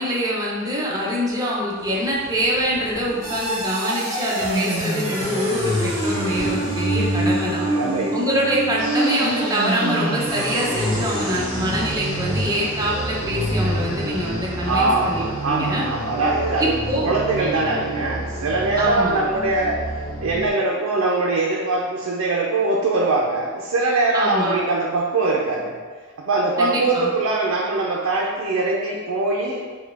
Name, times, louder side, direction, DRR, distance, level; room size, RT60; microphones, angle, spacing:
voice 1, 0.0-7.7 8.1-15.8 16.6-17.2 18.8-19.2 24.1-24.6 26.6-27.1, equal, 20° right, -5 dB, 0.7 m, -24 dB
sound 1, 1.8-6.8, equal, 15° left, 0.9 m, -41 dB
sound 2, 3.2-20.5, right 1 dB, 35° right, 1.4 m, -26 dB
voice 2, 7.7-8.2 14.6-16.8 17.0-19.9 20.2-25.8 26.2-29.6, right 2 dB, 85° right, -1 dB, 0.4 m, -22 dB
4.5 x 2.2 x 3.4 m, 1.5 s
head